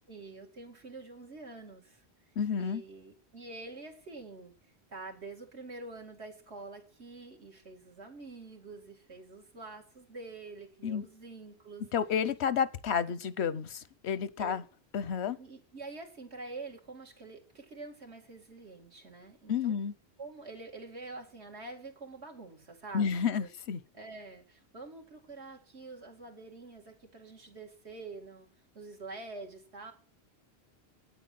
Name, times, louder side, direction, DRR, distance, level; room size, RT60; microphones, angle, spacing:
voice 1, 0.1-2.0 2.6-4.5 4.9-11.8 14.4-14.5 15.4-19.7 20.2-23.5 23.9-28.5 28.7-29.9, right 3 dB, 90° right, 2.6 m, -46 dB
voice 2, 2.4-2.8 10.8-11.1 11.9-14.6 14.9-15.4 19.5-19.9 22.9-23.8, left 7 dB, 90° left, 1.0 m, -31 dB
9.1 x 8.4 x 7.5 m
omnidirectional pair, 1.1 m